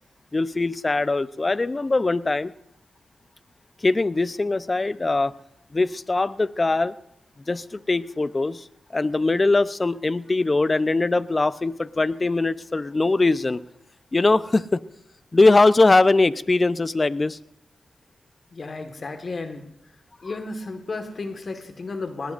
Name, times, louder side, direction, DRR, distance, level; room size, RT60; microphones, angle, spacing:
voice 1, 0.3-2.5 3.8-5.3 5.7-6.9 7.5-8.7 8.9-13.6 14.1-14.8 15.3-17.4, left 3 dB, 35° left, 15 dB, 0.7 m, -21 dB
voice 2, 18.5-19.6 20.2-22.3, left 3 dB, 55° left, 6 dB, 1.6 m, -33 dB
19.5 x 18.0 x 2.6 m, 0.74 s
cardioid pair, 50°, 0 cm